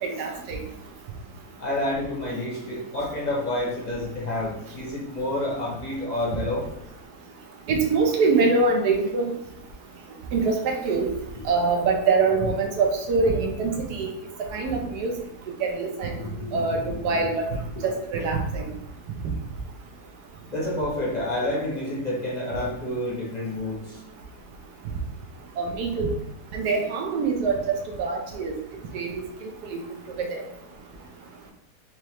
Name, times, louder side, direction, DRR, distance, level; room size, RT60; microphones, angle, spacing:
voice 1, 0.0-0.6 7.7-9.3 10.3-11.1 11.4-14.1 14.5-15.1 15.6-16.1 16.5-17.4 17.8-18.6 25.6-26.1 26.5-28.5 28.9-29.1 29.7-29.8 30.2-30.4, right 4 dB, 80° right, 2 dB, 1.2 m, -24 dB
voice 2, 1.6-6.7 11.3-11.4 16.1-17.3 20.5-24.0, left 1 dB, 35° left, -4 dB, 0.7 m, -29 dB
3.5 x 3.2 x 3.0 m, 0.85 s
omnidirectional pair, 1.8 m